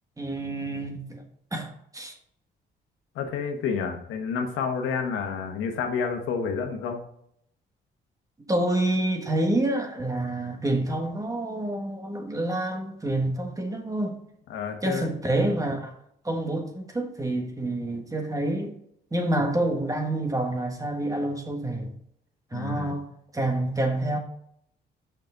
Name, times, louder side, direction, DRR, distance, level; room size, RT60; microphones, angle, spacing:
voice 1, 0.2-1.2 1.5-2.2 8.5-14.2 14.8-15.9 16.2-18.7 19.1-21.9 22.5-23.0 23.3-24.2, right 1 dB, 15° right, 1.4 m, -27 dB
voice 2, 3.1-7.0 14.5-15.1 22.5-23.0, left 6 dB, 85° left, 1.3 m, -29 dB
6.0 x 5.5 x 3.8 m
cardioid pair, 90°, 20 cm